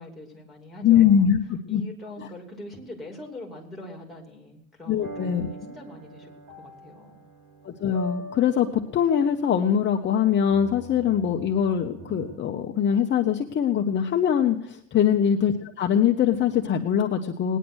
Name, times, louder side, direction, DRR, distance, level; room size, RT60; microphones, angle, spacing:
voice 1, 0.0-1.3 1.7-6.3 6.6-7.1, left 1 dB, ahead, 0 dB, 2.9 m, -42 dB
voice 2, 0.8-1.8 4.9-5.5 7.6-17.6, left 8 dB, 35° left, 3 dB, 0.8 m, -22 dB
sound 1, 5.0-12.4, right 1 dB, 60° right, 3.3 m, -43 dB
19.0 x 10.0 x 6.3 m, 0.69 s
cardioid pair, 175°, 33 cm